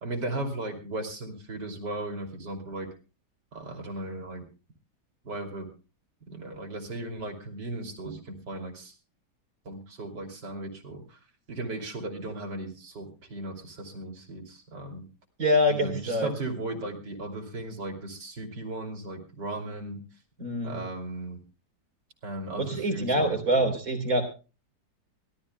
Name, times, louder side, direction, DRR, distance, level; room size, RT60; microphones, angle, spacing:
voice 1, 0.0-2.9 3.5-4.4 5.2-5.7 6.3-8.9 9.7-11.2 11.5-15.0 15.7-20.0 20.6-21.4 22.2-23.7, right 2 dB, 85° right, 5 dB, 3.5 m, -36 dB
voice 2, 15.4-16.3 20.4-20.8 22.6-24.2, equal, 55° right, 5 dB, 3.9 m, -25 dB
24.0 x 17.0 x 2.2 m, 0.33 s
omnidirectional pair, 1.8 m